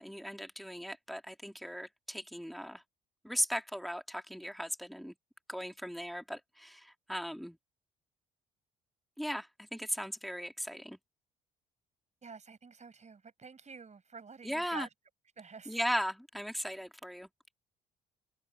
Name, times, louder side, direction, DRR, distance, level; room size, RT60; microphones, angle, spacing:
voice 1, 0.0-2.8 3.2-5.1 5.5-7.6 9.2-11.0 14.4-14.9 15.6-17.3, equal, ahead, 3.2 m, -37 dB
voice 2, 12.2-14.9 15.4-15.8, right 5 dB, 35° right, 5.6 m, -48 dB
hypercardioid pair, 50°, 20 cm